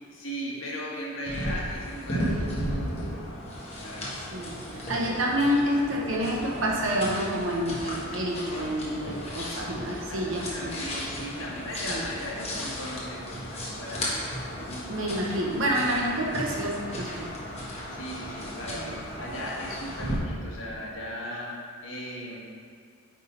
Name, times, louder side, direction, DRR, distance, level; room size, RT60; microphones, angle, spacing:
voice 1, 0.1-3.3 3.7-4.3 4.6-5.3 10.1-14.2 14.6-15.1 17.9-22.4, equal, 65° left, -4 dB, 1.4 m, -38 dB
sound 1, 1.3-20.2, equal, 30° left, 1.2 m, -35 dB
voice 2, 4.3-10.7 11.9-12.1 14.9-17.3 18.6-19.0, equal, 65° right, -2 dB, 1.1 m, -28 dB
9.0 x 3.6 x 4.4 m, 2.1 s
head